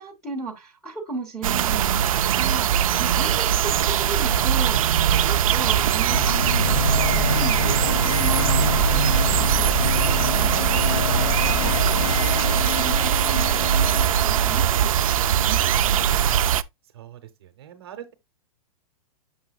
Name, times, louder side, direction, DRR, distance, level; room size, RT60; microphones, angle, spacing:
voice 1, 0.0-16.1, right 3 dB, 5° left, 0.9 m, -36 dB
sound 1, 1.4-16.6, right 10 dB, 65° right, 0.4 m, -21 dB
sound 2, 6.1-15.2, left 5 dB, 50° left, 0.4 m, -27 dB
voice 2, 16.9-18.1, right 10 dB, 40° right, 0.9 m, -42 dB
7.1 x 6.2 x 2.3 m
hypercardioid pair, 180°, 19 cm